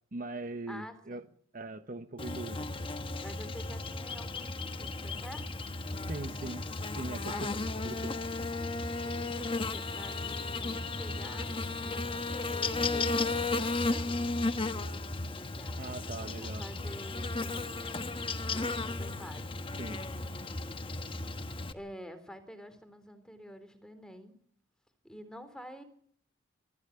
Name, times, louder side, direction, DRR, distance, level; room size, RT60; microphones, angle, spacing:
voice 1, 0.1-1.2 1.5-2.7 6.1-6.7 7.0-7.4 7.8-8.2 15.8-16.7 19.8-20.0, right 2 dB, 45° right, 10 dB, 1.1 m, -40 dB
voice 2, 0.7-1.3 3.2-5.6 7.3-7.6 9.0-14.2 15.3-21.2 21.7-24.4 25.0-25.8, equal, 5° left, 9 dB, 3.6 m, -49 dB
Buzz, 2.2-21.7, left 3 dB, 30° left, 1.2 m, -34 dB
24.5 x 15.0 x 9.9 m, 0.63 s
head